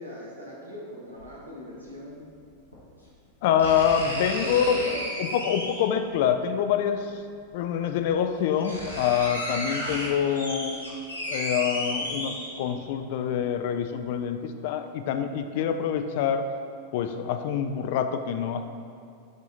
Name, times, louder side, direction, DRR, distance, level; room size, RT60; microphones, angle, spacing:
voice 1, 0.0-2.3 4.4-5.0, left 1 dB, 80° right, -5 dB, 1.3 m, -40 dB
sound 1, 1.2-1.3 2.7-2.8 3.6-6.0 7.3-7.4 8.1-8.2 8.4-12.8 13.3-13.4, left 1 dB, 90° left, 1.1 m, -33 dB
voice 2, 3.4-4.8 5.2-7.2 7.5-10.8 11.3-16.5 16.9-18.7, left 8 dB, 50° left, 8 dB, 0.4 m, -26 dB
7.2 x 3.6 x 4.0 m, 2.4 s
figure-of-eight pair, 90°, 0 cm